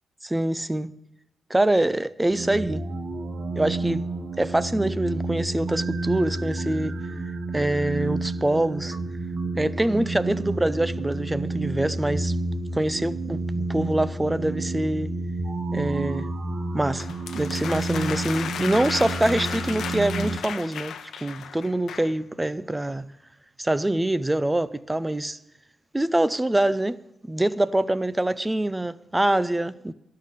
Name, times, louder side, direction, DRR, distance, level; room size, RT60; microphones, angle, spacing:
voice 1, 0.2-0.9 1.5-2.8 3.6-4.0 4.4-7.0 7.5-9.0 9.5-12.4 12.7-15.1 15.7-16.3 16.7-23.1 23.6-25.4 25.9-27.0 27.3-29.9, right 1 dB, 10° right, 0.4 m, -25 dB
sound 1, 2.3-20.4, right 2 dB, 35° right, 0.8 m, -30 dB
sound 2, 17.0-22.2, left 7 dB, 70° left, 0.8 m, -34 dB
12.0 x 6.6 x 9.7 m
wide cardioid pair, 170°, 0 cm